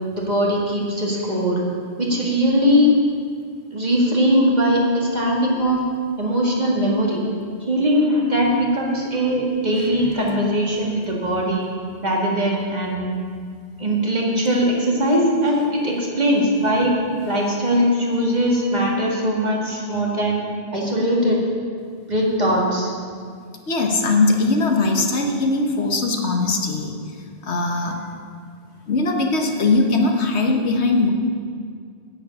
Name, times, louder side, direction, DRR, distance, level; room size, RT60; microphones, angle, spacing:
voice 1, 0.1-1.6 2.0-2.9 3.7-5.8 6.2-7.2 7.7-11.7 12.0-13.1 13.8-17.0 17.3-20.4 20.7-21.4 22.1-22.9, equal, 40° right, -2 dB, 2.1 m, -20 dB
voice 2, 23.7-27.0 27.4-28.2 28.9-31.1, left 3 dB, 80° left, 3 dB, 1.5 m, -20 dB
9.9 x 7.1 x 8.8 m, 2.1 s
omnidirectional pair, 1.1 m